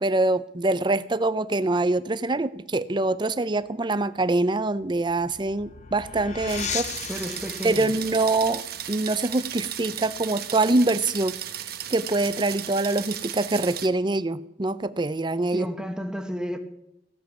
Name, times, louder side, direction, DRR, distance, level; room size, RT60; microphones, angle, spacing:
voice 1, 0.0-6.9 7.6-8.6 8.9-11.4 11.9-15.7, right 2 dB, 25° right, 14 dB, 0.6 m, -24 dB
sound 1, 4.7-10.1, left 7 dB, 40° left, 0.8 m, -38 dB
sound 2, 6.5-13.9, right 10 dB, 55° right, 1.2 m, -35 dB
voice 2, 7.1-7.9 15.5-16.6, equal, 5° right, 5 dB, 1.4 m, -32 dB
16.0 x 7.4 x 8.3 m, 0.82 s
head